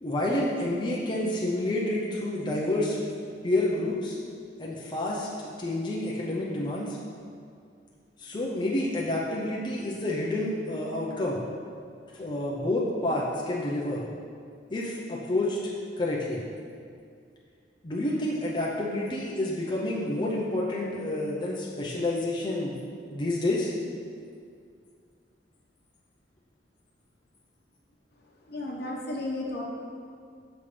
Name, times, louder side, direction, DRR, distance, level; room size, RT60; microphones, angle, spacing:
voice 1, 0.0-3.0 3.4-4.2 4.6-7.0 8.2-11.4 12.1-14.0 14.7-15.6 16.0-16.4 17.8-22.7 23.1-23.7, left 1 dB, 25° left, -5 dB, 0.6 m, -29 dB
voice 2, 28.5-29.6, left 1 dB, 60° left, -1 dB, 1.0 m, -33 dB
7.0 x 5.6 x 3.3 m, 2.3 s
head